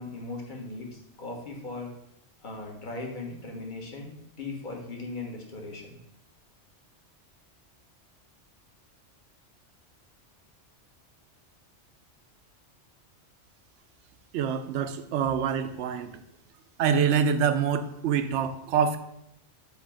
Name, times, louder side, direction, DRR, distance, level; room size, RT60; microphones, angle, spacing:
voice 1, 0.0-1.9 2.4-4.1 4.4-6.0, left 3 dB, 45° left, -1 dB, 1.4 m, -38 dB
voice 2, 14.3-16.1 16.8-19.0, right 7 dB, 75° right, 9 dB, 0.9 m, -25 dB
7.9 x 2.9 x 4.9 m, 0.77 s
omnidirectional pair, 1.2 m